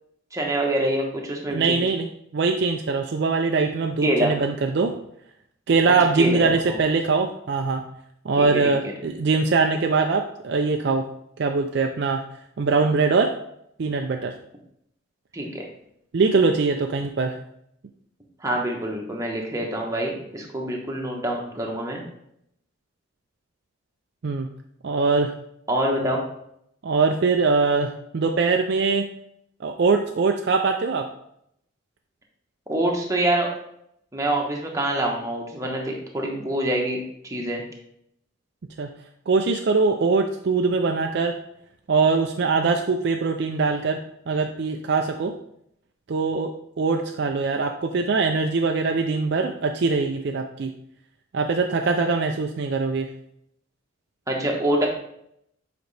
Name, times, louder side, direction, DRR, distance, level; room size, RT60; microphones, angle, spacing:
voice 1, 0.3-1.8 4.0-4.3 6.2-6.8 8.4-8.9 15.3-15.6 18.4-22.0 25.7-26.2 32.7-33.5 34.1-37.6 54.3-54.9, right 1 dB, 15° right, 0 dB, 1.1 m, -25 dB
voice 2, 1.5-5.0 5.7-7.8 8.2-11.1 11.4-12.2 12.6-13.3 13.8-14.4 16.1-17.4 24.2-24.5 24.8-25.3 26.8-29.1 29.6-31.1 38.8-38.9 39.3-41.4 41.9-44.0 44.3-45.3 46.1-50.7 51.3-53.1, right 4 dB, 55° right, 4 dB, 0.4 m, -22 dB
7.8 x 5.1 x 3.3 m, 0.74 s
head